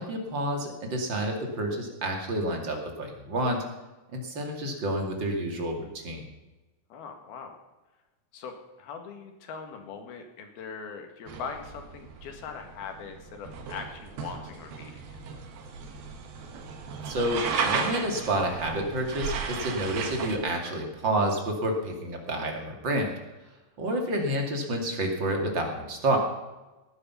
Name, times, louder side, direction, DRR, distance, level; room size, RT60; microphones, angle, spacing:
voice 1, 0.0-3.6 4.1-6.2 17.1-23.1 23.8-26.2, right 1 dB, 35° right, 2 dB, 2.6 m, -29 dB
voice 2, 6.9-7.5 8.3-15.2, left 6 dB, 85° left, 5 dB, 3.8 m, -41 dB
sound 1, 11.3-20.4, right 5 dB, 80° right, 3.5 m, -35 dB
18.0 x 10.0 x 5.7 m, 1.1 s
omnidirectional pair, 4.3 m